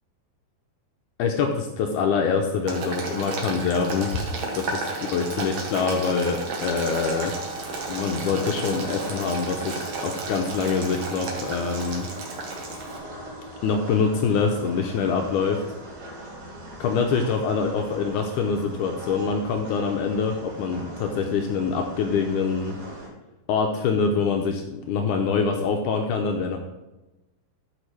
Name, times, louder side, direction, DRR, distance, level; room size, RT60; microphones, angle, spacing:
voice 1, 1.2-7.3 7.9-12.1 13.6-15.6 16.8-22.8 23.5-26.6, left 5 dB, 90° left, 3 dB, 1.8 m, -25 dB
Boiling, 2.7-13.0, right 3 dB, 60° right, 2.0 m, -33 dB
sound 1, 6.6-23.1, right 1 dB, 90° right, 4.7 m, -40 dB
14.0 x 5.2 x 3.3 m, 1.0 s
omnidirectional pair, 4.3 m